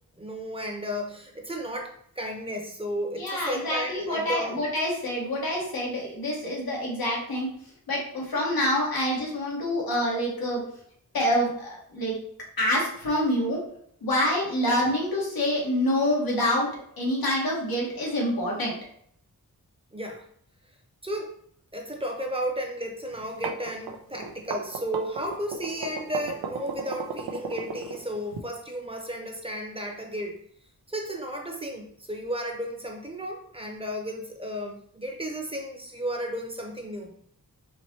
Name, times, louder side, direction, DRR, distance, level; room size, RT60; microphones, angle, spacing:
voice 1, 0.2-4.6 14.6-14.8 19.9-20.2 21.0-21.3 21.7-30.4 30.9-37.1, equal, 15° right, 1 dB, 0.8 m, -33 dB
voice 2, 3.1-7.5 7.9-10.6 11.1-12.2 12.6-13.6 14.0-16.7 17.0-18.7, left 1 dB, 85° left, -3 dB, 1.5 m, -26 dB
sound 1, 23.2-28.4, right 6 dB, 90° right, 0.5 m, -35 dB
4.3 x 2.9 x 2.9 m, 0.65 s
wide cardioid pair, 75°, 35 cm